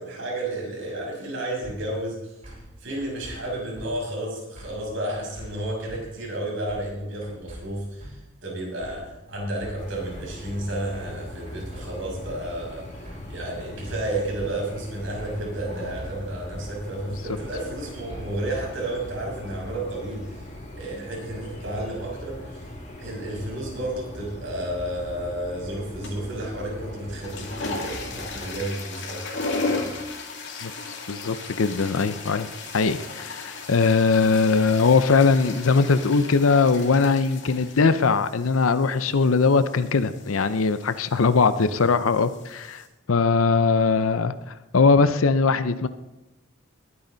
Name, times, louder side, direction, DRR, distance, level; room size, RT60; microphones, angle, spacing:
voice 1, 0.0-2.5 2.8-20.5 20.8-22.6 23.0-30.0 41.6-41.7, right 1 dB, 65° right, -2 dB, 6.2 m, -32 dB
sound 1, 1.6-1.8 2.4-2.7 3.0-3.3 3.7-3.9 4.6-4.8 5.1-5.5 5.9-6.0 6.7-7.0 7.2-7.6 8.0-8.1 8.8-9.1 9.3-9.7 10.1-10.2 10.9-11.2 11.5-11.8 12.2-12.4 13.1-13.3 13.6-14.0 14.4-14.5 15.2-15.4 15.7-16.1 16.5-16.6 17.3-17.6 17.8-18.2, equal, 35° right, 6.0 m, -42 dB
sound 2, 9.8-28.6, equal, 35° left, 4.5 m, -40 dB
sound 3, 26.0-26.4 27.0-42.9, left 3 dB, 60° left, 2.5 m, -36 dB
voice 2, 31.1-32.5 32.7-44.3 44.7-45.9, left 4 dB, 80° left, 12 dB, 0.6 m, -20 dB
21.0 x 9.9 x 4.0 m, 1.0 s
head